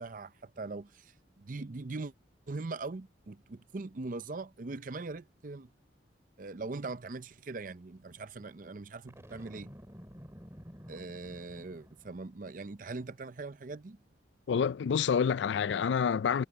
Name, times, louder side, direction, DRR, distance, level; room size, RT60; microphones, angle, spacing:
voice 1, 0.0-2.1 2.5-5.7 6.4-9.7 10.9-14.0, right 3 dB, 50° right, 0.6 m, -41 dB
Boom, 9.1-12.3, equal, 15° right, 2.7 m, -51 dB
voice 2, 14.5-16.5, left 7 dB, 80° left, 0.4 m, -28 dB
head